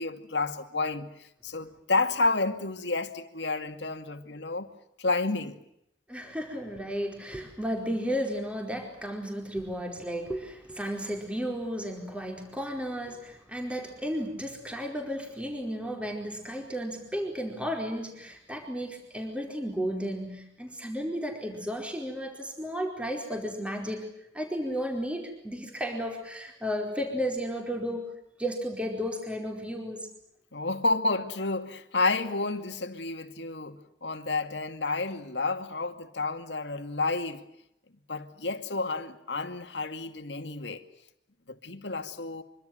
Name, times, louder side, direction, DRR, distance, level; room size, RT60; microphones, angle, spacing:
voice 1, 0.0-4.7 5.0-5.6 30.5-37.4 38.1-40.8 41.5-42.4, left 3 dB, 75° left, 2.4 m, -30 dB
voice 2, 6.1-24.1 24.3-28.1 28.4-30.1, equal, 5° right, 4.7 m, -33 dB
26.0 x 24.5 x 7.9 m
head